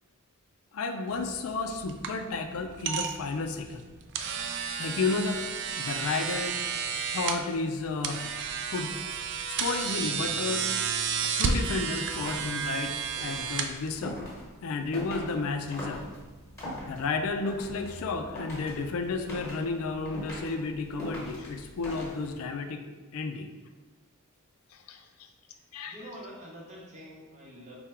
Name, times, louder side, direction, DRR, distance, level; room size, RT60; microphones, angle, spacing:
voice 1, 0.7-3.8 4.8-5.4 5.8-6.6 6.9-8.3 8.7-9.0 9.5-10.7 11.2-14.2 14.6-16.1 16.8-22.8 23.1-23.5 24.9-25.0 25.7-25.9, left 4 dB, 70° left, 6 dB, 0.4 m, -32 dB
sound 1, 1.1-14.4, right 6 dB, 55° right, 0.3 m, -32 dB
sound 2, 12.0-22.5, equal, 15° left, 1.3 m, -43 dB
voice 2, 25.5-27.7, equal, 30° right, -4 dB, 0.9 m, -46 dB
3.6 x 2.2 x 4.3 m, 1.3 s
head